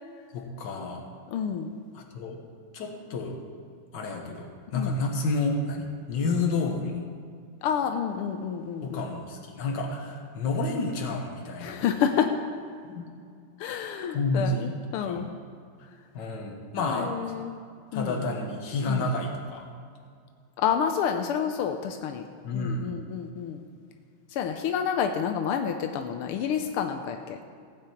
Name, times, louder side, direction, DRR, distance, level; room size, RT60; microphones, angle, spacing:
voice 1, 0.3-1.1 2.0-2.4 2.7-3.4 3.9-7.0 8.8-11.8 12.9-13.1 13.7-13.9 14.1-15.2 16.1-17.2 17.9-19.7 22.4-23.0, left 2 dB, 55° left, 1 dB, 1.9 m, -30 dB
voice 2, 1.3-1.7 4.7-4.9 7.6-9.1 11.6-12.3 13.6-15.3 16.8-17.6 17.9-18.2 18.9-19.1 20.6-22.2 22.5-23.6 24.3-27.4, left 8 dB, 85° left, 6 dB, 1.6 m, -29 dB
16.5 x 8.7 x 4.5 m, 2.2 s
omnidirectional pair, 2.4 m